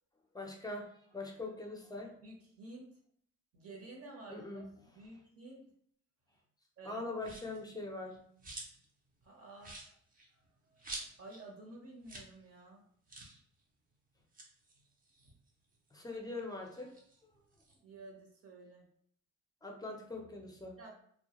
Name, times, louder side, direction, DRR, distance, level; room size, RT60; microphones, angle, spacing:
voice 1, 0.3-2.1 4.3-4.7 6.8-8.2 15.9-16.9 19.6-20.8, left 2 dB, 15° left, 1 dB, 0.6 m, -42 dB
voice 2, 2.2-3.0 3.5-4.7 4.9-5.7 6.8-7.0 9.2-9.8 10.3-10.4 10.7-10.8 11.2-12.9 17.8-18.9 20.8-20.9, right 2 dB, 50° right, -1 dB, 0.9 m, -52 dB
sound 1, 7.2-7.6 8.1-8.9 9.2-9.3 9.6-11.4 11.7-11.8 12.0-12.3 12.6-12.7 13.1-13.4 14.2-15.9 16.3-17.8, right 2 dB, 30° right, 0.6 m, -49 dB
2.2 x 2.2 x 2.9 m, 0.64 s
cardioid pair, 90°, 30 cm